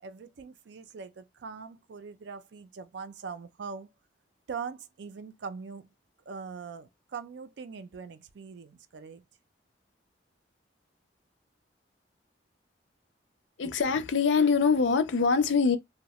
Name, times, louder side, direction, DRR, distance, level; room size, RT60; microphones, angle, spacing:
voice 1, 0.0-3.9 4.5-5.9 6.3-9.2, right 5 dB, 70° right, 0.4 m, -42 dB
voice 2, 13.6-15.8, left 5 dB, 80° left, 0.5 m, -24 dB
2.7 x 2.1 x 2.9 m
head